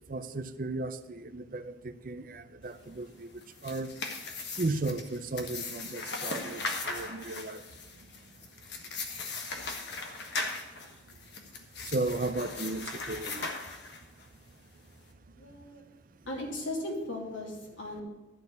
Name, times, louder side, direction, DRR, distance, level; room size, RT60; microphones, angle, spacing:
voice 1, 0.1-3.3 3.6-3.9 4.6-7.6 11.9-13.5, right 2 dB, 45° right, 11 dB, 0.5 m, -35 dB
sound 1, 3.3-14.2, left 3 dB, 60° left, 1.4 m, -38 dB
voice 2, 15.4-15.8 16.3-18.0, left 1 dB, 90° left, -2 dB, 3.0 m, -37 dB
11.5 x 4.3 x 8.1 m, 1.2 s
head